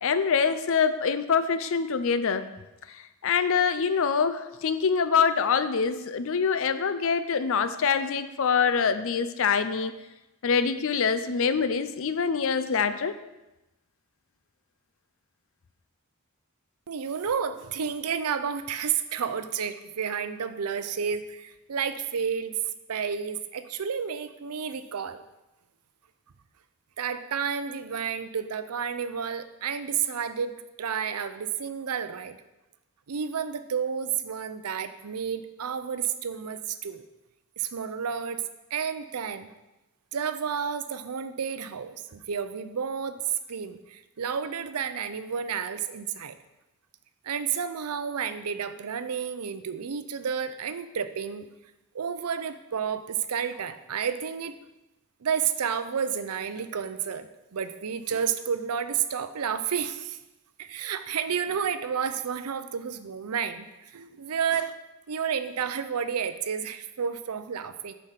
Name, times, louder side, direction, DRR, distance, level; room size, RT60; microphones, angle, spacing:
voice 1, 0.0-2.5 2.9-10.0 10.4-13.2, left 6 dB, 65° left, 12 dB, 0.5 m, -25 dB
voice 2, 16.9-22.6 22.9-25.2 27.0-30.5 30.8-32.4 33.1-37.0 37.6-38.4 38.7-39.5 40.1-43.2 43.5-46.4 47.2-51.5 51.9-54.6 55.2-60.2 60.6-63.7 63.9-64.8 65.1-67.9, right 7 dB, 90° right, 11 dB, 0.6 m, -31 dB
7.4 x 5.2 x 5.8 m, 0.99 s
head